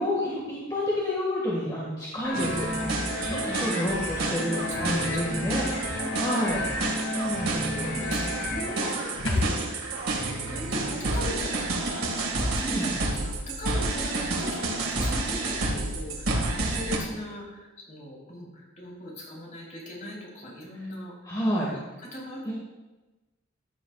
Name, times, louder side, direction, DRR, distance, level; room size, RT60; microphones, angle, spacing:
voice 1, 0.0-2.7 3.2-6.7 7.1-8.0 12.6-12.9 21.2-21.7 22.5-22.6, left 1 dB, 20° left, -6 dB, 2.0 m, -29 dB
sound 1, 2.2-8.9, left 2 dB, 60° left, 1.6 m, -33 dB
sound 2, 2.3-17.0, right 2 dB, 90° right, 2.1 m, -30 dB
voice 2, 3.2-3.9 4.3-4.4 4.7-6.2 6.8-9.6 10.1-21.2 22.0-22.5, left 1 dB, 40° left, -4 dB, 3.9 m, -40 dB
sound 3, 9.2-12.8 13.0-13.1, left 2 dB, 80° left, 2.2 m, -35 dB
14.5 x 9.9 x 2.5 m, 1.1 s
head